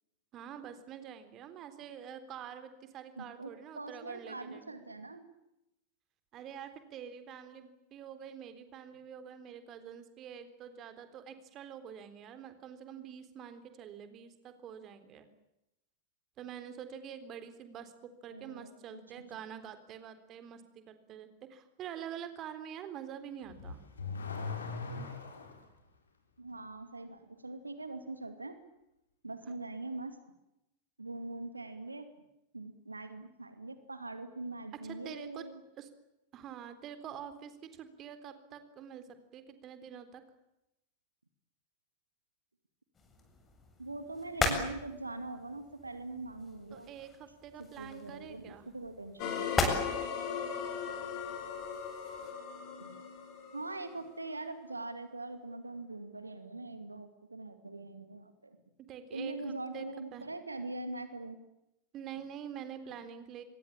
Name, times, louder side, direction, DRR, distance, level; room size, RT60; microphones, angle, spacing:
voice 1, 0.3-4.7 6.3-15.3 16.4-23.8 34.8-35.4 35.8-35.9 36.3-39.1 39.3-40.2 46.7-48.7 58.8-59.9 60.1-60.3 61.9-63.4, right 8 dB, 35° right, 10 dB, 3.8 m, -46 dB
voice 2, 3.2-5.3 18.3-19.2 26.4-28.6 29.2-30.2 31.0-32.1 32.5-35.6 43.8-46.9 47.6-49.6 52.8-53.0 53.5-58.6 59.1-61.4, right 2 dB, 80° right, 9 dB, 2.5 m, -42 dB
Car / Accelerating revving vroom, 23.4-25.7, left 4 dB, 70° left, 5.1 m, -39 dB
sound 1, 42.9-52.3, left 3 dB, 20° left, 7.5 m, -38 dB
sound 2, 49.2-54.2, left 7 dB, 40° left, 6.3 m, -38 dB
27.0 x 22.5 x 8.9 m, 0.89 s
figure-of-eight pair, 90°, 0 cm